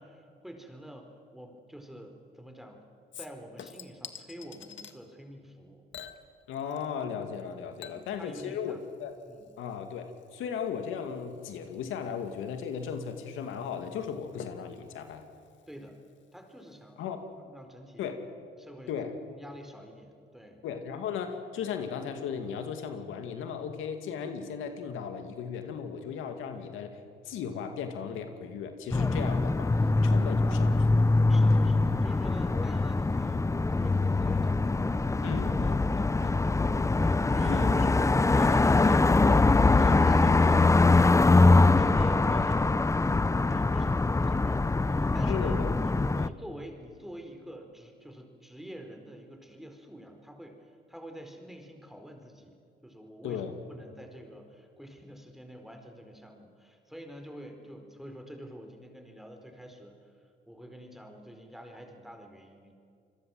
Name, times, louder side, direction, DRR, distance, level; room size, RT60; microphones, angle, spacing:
voice 1, 0.0-2.9 3.2-5.8 7.8-8.8 9.2-9.5 15.7-16.0 16.3-17.1 17.5-18.1 18.6-18.9 19.2-20.6 31.3-37.8 38.3-45.9 46.2-52.5 52.8-60.1 60.5-62.7, equal, ahead, 4 dB, 4.5 m, -47 dB
Chink clink / Liquid, 3.1-5.0 5.9-7.1 7.3-16.4 16.7-16.8, left 8 dB, 70° left, 1.8 m, -50 dB
voice 2, 6.5-9.1 9.6-15.2 17.0-17.3 18.0-18.2 18.9-19.2 20.6-27.0 27.2-29.7 30.0-31.1 35.2-35.8 37.5-37.9 38.3-38.4 45.2-46.3 53.2-53.5, left 7 dB, 90° left, 6 dB, 2.3 m, -36 dB
sound 1, 28.9-46.3, left 3 dB, 15° left, 0.7 m, -23 dB
28.0 x 22.0 x 7.8 m, 2.4 s
cardioid pair, 90°, 20 cm